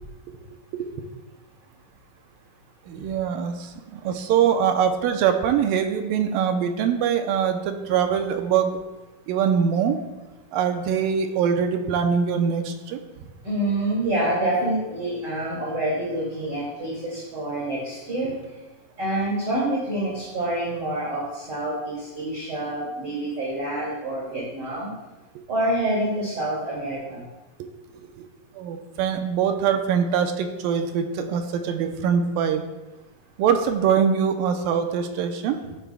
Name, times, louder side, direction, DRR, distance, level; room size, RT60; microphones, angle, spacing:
voice 1, 0.7-1.1 2.9-8.8 9.3-10.0 10.5-13.0 27.6-27.7 28.2-28.3 28.6-32.7 33.4-35.8, right 7 dB, 85° right, 6 dB, 2.4 m, -23 dB
voice 2, 13.4-18.3 19.0-24.9 25.5-27.2, right 1 dB, 35° right, -6 dB, 2.6 m, -27 dB
15.0 x 10.0 x 2.3 m, 1.1 s
omnidirectional pair, 4.0 m